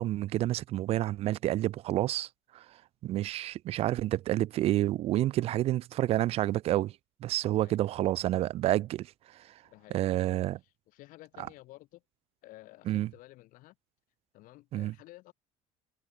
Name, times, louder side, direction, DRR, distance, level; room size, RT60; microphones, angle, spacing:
voice 1, 0.0-2.6 3.0-6.9 7.2-9.1 9.9-10.6 11.4-11.5 12.9-13.1 14.7-14.9, right 14 dB, 40° right, 0.4 m, -29 dB
voice 2, 7.5-8.1 9.6-10.3 10.6-12.0 12.4-13.8 14.3-15.3, left 18 dB, 55° left, 3.5 m, -53 dB
cardioid pair, 175°, 16 cm